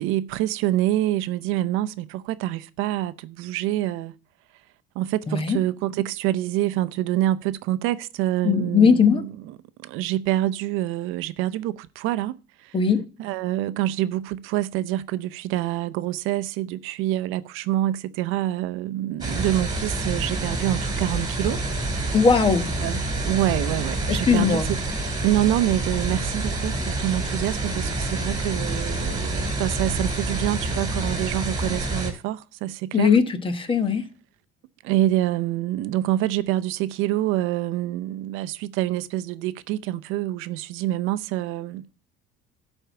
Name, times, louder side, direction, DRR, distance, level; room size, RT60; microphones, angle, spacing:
voice 1, 0.0-1.9 2.4-3.1 3.4-4.1 5.0-5.1 5.5-5.9 6.2-7.4 7.7-8.9 9.9-11.7 12.0-12.3 13.2-14.2 14.5-15.0 15.5-17.4 17.7-21.6 22.8-22.9 23.3-24.6 25.2-26.7 27.0-27.5 28.2-29.1 29.6-32.3 33.0-33.1 34.9-38.5 38.8-39.8 40.1-41.7, right 14 dB, 75° right, 0.6 m, -25 dB
voice 2, 5.3-5.6 8.4-9.2 12.7-13.0 22.1-22.7 24.1-24.7 32.9-34.0, left 6 dB, 25° left, 1.1 m, -19 dB
sound 1, 19.2-32.1, right 2 dB, 20° right, 2.3 m, -27 dB
11.5 x 4.5 x 6.9 m
cardioid pair, 135°, 21 cm